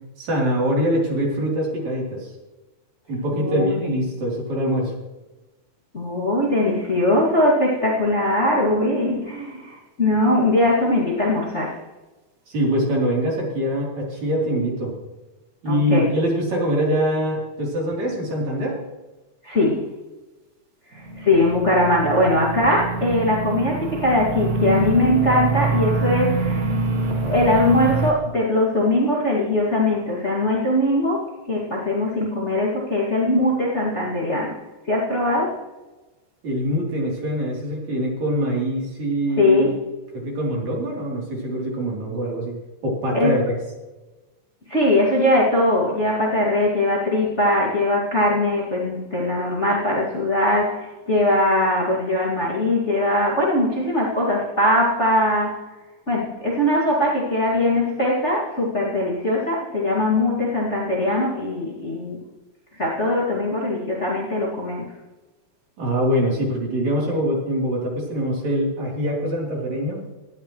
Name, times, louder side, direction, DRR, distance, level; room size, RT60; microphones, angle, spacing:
voice 1, 0.2-2.3 3.1-4.9 12.5-14.9 15.6-18.8 36.4-39.7 40.1-43.5 65.8-70.0, equal, 60° right, -3 dB, 4.7 m, -24 dB
voice 2, 3.3-3.9 5.9-11.8 15.6-16.1 19.4-19.8 20.9-26.6 27.2-34.6 34.8-35.6 39.4-39.7 43.1-43.4 44.7-55.6 56.1-62.2 62.7-64.9, left 1 dB, 25° left, -4 dB, 2.2 m, -21 dB
sound 1, 21.0-28.1, right 3 dB, 75° right, 0.8 m, -25 dB
18.5 x 12.5 x 3.2 m, 1.1 s
omnidirectional pair, 3.7 m